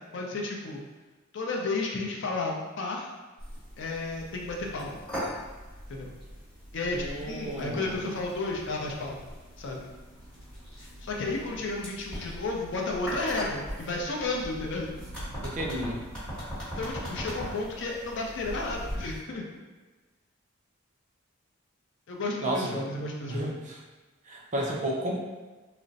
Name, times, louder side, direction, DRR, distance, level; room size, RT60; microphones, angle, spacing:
voice 1, 0.1-0.8 1.3-3.1 3.8-5.0 5.9-6.1 6.7-9.3 9.6-9.8 10.8-14.9 16.8-19.4 22.1-23.5, left 2 dB, 60° left, -1 dB, 0.5 m, -32 dB
sound 1, 3.4-19.2, equal, 5° left, 1.2 m, -40 dB
voice 2, 6.9-8.1 15.4-16.1 22.4-22.8 23.3-23.8 24.3-25.2, right 1 dB, 35° right, -2 dB, 0.5 m, -32 dB
2.4 x 2.0 x 3.9 m, 1.2 s
head